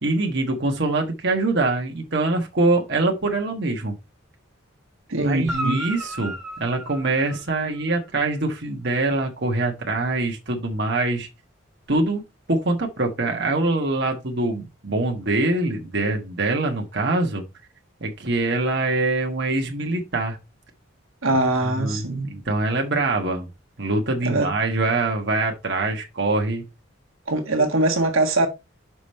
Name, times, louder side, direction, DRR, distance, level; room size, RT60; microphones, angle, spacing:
voice 1, 0.0-3.9 5.2-11.3 11.9-12.2 12.5-17.4 18.0-20.4 21.8-23.5 23.8-26.6, right 2 dB, 55° right, 1.4 m, -24 dB
voice 2, 5.1-5.8 21.2-22.3 24.2-24.5 27.3-28.5, right 2 dB, 85° right, 1.5 m, -22 dB
Guitar, 5.5-8.0 11.8-11.9, right 1 dB, ahead, 2.3 m, -33 dB
6.1 x 5.2 x 4.3 m
head